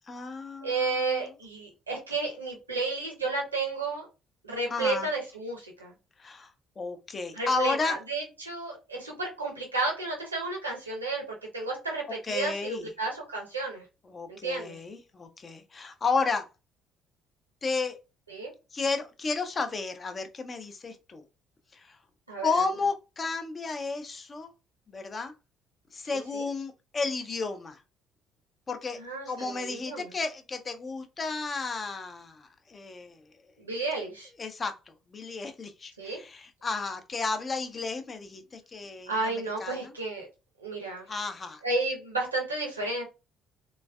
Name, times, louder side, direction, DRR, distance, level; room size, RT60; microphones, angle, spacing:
voice 1, 0.1-0.7 4.7-5.1 6.2-6.5 6.8-8.0 12.2-12.9 14.1-16.5 17.6-18.0 18.7-21.2 21.7-22.0 22.4-24.5 24.9-25.3 25.9-27.8 28.7-29.0 29.3-33.2 34.4-39.9 41.1-41.6, left 4 dB, 30° left, 0.6 m, -32 dB
voice 2, 0.6-4.1 4.4-5.9 7.3-13.8 14.3-14.8 18.3-18.5 22.3-22.5 26.1-26.4 29.0-30.1 33.6-34.3 36.0-36.2 39.1-40.3 40.6-41.1 41.6-43.0, right 3 dB, 85° right, 0.9 m, -32 dB
3.3 x 3.1 x 2.3 m
figure-of-eight pair, 50°, 0 cm